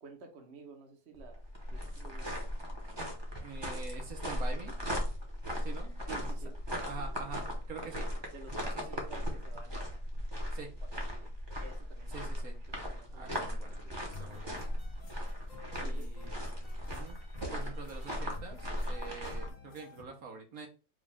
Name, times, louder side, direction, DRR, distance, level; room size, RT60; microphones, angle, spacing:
voice 1, 0.0-1.4 1.7-2.4 6.1-6.5 7.0-7.1 8.3-10.0 10.6-11.3 11.6-12.6 12.9-14.0 15.8-16.1, right 4 dB, 50° right, 3 dB, 1.0 m, -52 dB
sound 1, 1.2-19.5, equal, 20° right, 0.9 m, -37 dB
voice 2, 3.4-4.8 5.6-6.0 6.2-6.3 6.8-8.1 8.8-9.1 10.5-10.7 12.1-12.6 13.1-14.7 15.7-16.4 16.8-17.2 17.5-20.7, right 5 dB, 70° right, 2 dB, 1.3 m, -46 dB
sound 2, 14.1-20.0, left 5 dB, 60° left, 1.3 m, -53 dB
5.1 x 2.4 x 3.5 m, 0.33 s
omnidirectional pair, 1.6 m